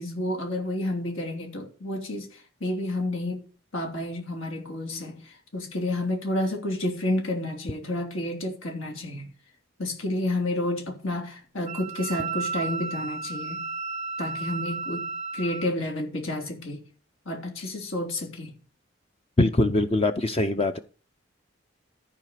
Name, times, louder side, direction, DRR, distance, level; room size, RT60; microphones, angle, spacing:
voice 1, 0.0-3.4 3.7-9.3 9.8-13.6 14.2-15.0 15.3-16.8 17.2-18.6, left 1 dB, 80° left, 3.3 m, -30 dB
Wind instrument woodwind instrument, 11.6-15.7, right 4 dB, 35° right, 0.5 m, -33 dB
voice 2, 19.4-20.8, left 2 dB, 30° left, 0.6 m, -22 dB
13.5 x 4.9 x 6.5 m
head